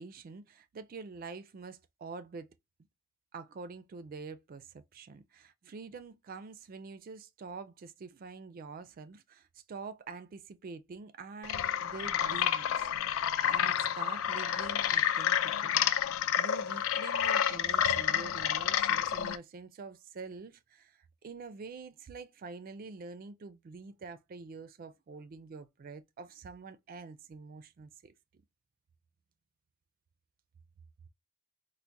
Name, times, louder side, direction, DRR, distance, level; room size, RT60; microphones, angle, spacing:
voice 1, 0.0-2.5 3.3-12.8 13.2-15.9 16.4-28.1, right 4 dB, 45° right, 0.3 m, -46 dB
sound 1, 11.4-19.4, left 9 dB, 85° left, 0.4 m, -29 dB
4.4 x 2.0 x 2.6 m
head